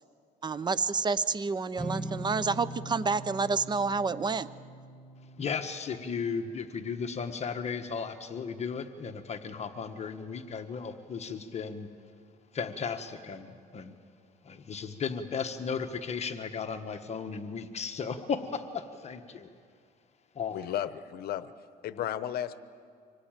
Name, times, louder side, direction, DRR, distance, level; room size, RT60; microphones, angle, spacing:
voice 1, 0.4-4.5, right 4 dB, 25° right, 15 dB, 0.7 m, -29 dB
sound 1, 1.7-8.2, right 1 dB, 5° left, 1.6 m, -43 dB
voice 2, 5.4-11.9 12.5-13.9 14.4-19.5 20.3-20.6, left 5 dB, 40° left, 6 dB, 1.3 m, -35 dB
voice 3, 20.5-21.5 21.8-22.6, left 11 dB, 65° left, 13 dB, 1.0 m, -34 dB
25.5 x 18.5 x 9.0 m, 2.3 s
cardioid pair, 110°, 17 cm